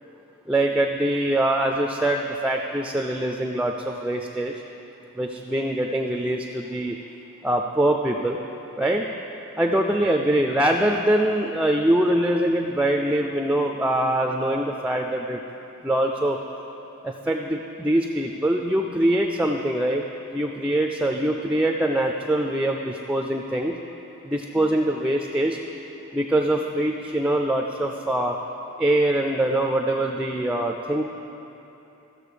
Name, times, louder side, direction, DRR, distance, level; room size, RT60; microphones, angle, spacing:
voice 1, 0.5-4.5 5.2-7.0 7.4-8.4 8.8-9.0 9.6-15.4 15.8-16.4 17.0-20.1 20.3-23.7 24.2-25.6 26.1-28.4 28.8-31.0, right 1 dB, 5° right, 2 dB, 0.3 m, -23 dB
14.0 x 6.6 x 5.0 m, 3.0 s
head